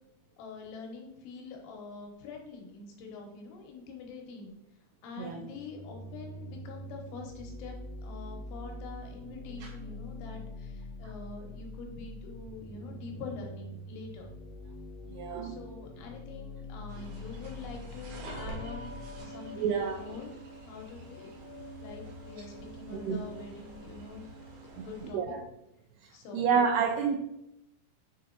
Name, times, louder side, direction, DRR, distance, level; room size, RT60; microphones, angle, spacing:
voice 1, 0.4-4.5 5.0-7.7 8.0-14.3 15.4-20.3 20.6-21.3 21.8-25.4 26.1-26.4, left 4 dB, 90° left, 1 dB, 3.2 m, -45 dB
voice 2, 5.2-5.5 9.6-9.7 15.1-15.6 19.6-20.0 22.9-23.2 25.1-25.4 26.3-27.2, right 6 dB, 80° right, 1 dB, 2.3 m, -28 dB
sound 1, 5.5-19.2, left 1 dB, 50° right, 0.6 m, -44 dB
sound 2, 16.9-25.1, right 1 dB, 65° right, 1.9 m, -46 dB
6.7 x 3.7 x 4.0 m, 0.85 s
omnidirectional pair, 4.7 m